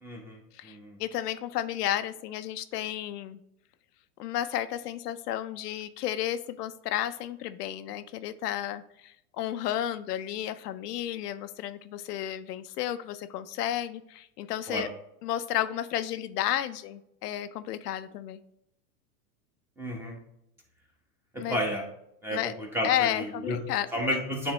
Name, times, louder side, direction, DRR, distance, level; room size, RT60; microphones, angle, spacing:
voice 1, 0.0-1.0 14.7-14.8 19.8-20.2 21.3-21.8 22.2-23.6 23.9-24.5, equal, 5° right, 0 dB, 1.2 m, -32 dB
voice 2, 0.5-3.4 4.2-14.9 15.2-18.4 21.4-21.6 22.3-22.5 22.8-24.2, left 12 dB, 80° left, 11 dB, 0.6 m, -32 dB
8.8 x 3.6 x 3.1 m, 0.78 s
supercardioid pair, 135°, 46 cm